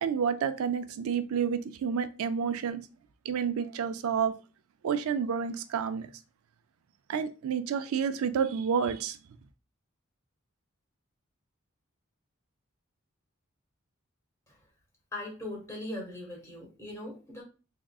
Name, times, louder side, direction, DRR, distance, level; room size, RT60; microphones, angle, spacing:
voice 1, 0.0-2.8 3.3-4.3 4.8-6.1 7.1-9.2, right 7 dB, 90° right, 0.4 m, -29 dB
voice 2, 15.1-17.4, left 1 dB, 15° left, 1.4 m, -39 dB
3.6 x 3.5 x 2.3 m
head